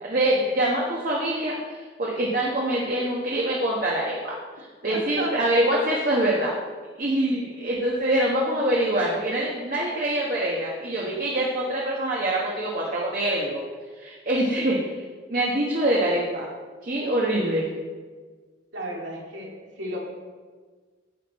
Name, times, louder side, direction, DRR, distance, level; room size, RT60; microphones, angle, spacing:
voice 1, 0.0-6.5 7.0-13.6 14.0-14.9 15.3-16.5 16.8-17.6, right 1 dB, 45° right, -3 dB, 1.2 m, -25 dB
voice 2, 4.9-5.3 18.7-19.5 19.8-20.0, right 1 dB, 80° right, -2 dB, 2.4 m, -32 dB
9.3 x 8.0 x 4.2 m, 1.5 s
head